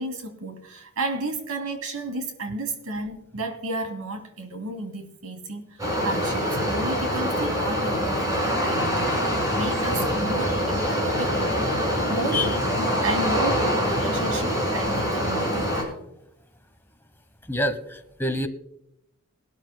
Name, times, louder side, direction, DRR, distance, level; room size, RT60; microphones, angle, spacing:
voice 1, 0.0-11.6 12.1-15.9, right 2 dB, 80° right, 2.5 m, -33 dB
sound 1, 5.8-15.8, equal, 15° right, 4.7 m, -24 dB
voice 2, 17.4-18.5, left 1 dB, 10° left, 1.0 m, -27 dB
21.0 x 12.5 x 2.2 m
head